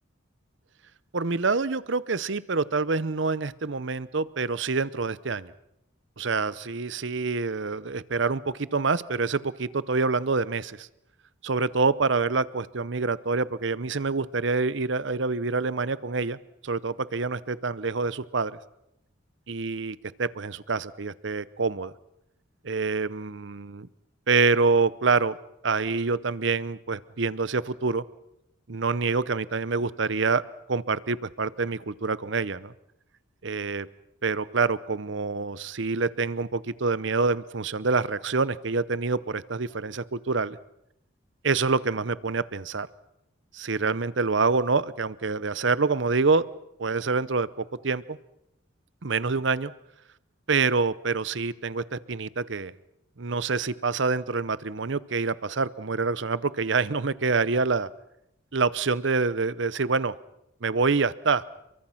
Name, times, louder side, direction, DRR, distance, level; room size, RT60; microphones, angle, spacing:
voice 1, 1.1-5.5 6.2-10.9 11.4-16.4 16.6-18.5 19.5-21.9 22.6-23.9 24.3-25.4 25.6-28.0 28.7-30.4 30.7-32.7 33.4-33.9 34.2-40.6 41.4-42.9 43.5-46.5 46.8-48.2 49.0-49.7 50.5-52.7 53.2-57.9 58.5-60.1 60.6-61.4, right 4 dB, 60° right, 17 dB, 0.8 m, -26 dB
29.5 x 23.5 x 5.9 m, 0.82 s
head